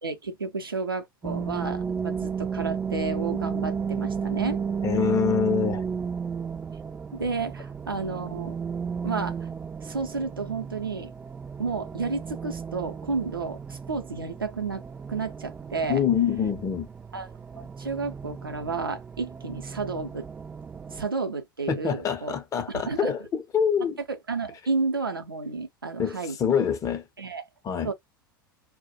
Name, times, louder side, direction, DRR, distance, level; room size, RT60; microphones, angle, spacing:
voice 1, 0.0-4.6 7.1-8.6 9.0-9.4 9.8-11.1 11.6-14.8 15.1-16.0 17.1-20.2 20.9-22.4 22.7-23.1 24.1-26.4 27.2-27.4 27.8-27.9, right 4 dB, 85° right, 0.6 m, -31 dB
sound 1, 1.2-21.1, right 6 dB, 15° right, 0.4 m, -34 dB
voice 2, 4.8-5.8 15.9-16.9 21.7-24.0 26.0-27.0 27.6-27.9, left 7 dB, 30° left, 0.6 m, -25 dB
2.2 x 2.1 x 2.6 m
figure-of-eight pair, 85°, 12 cm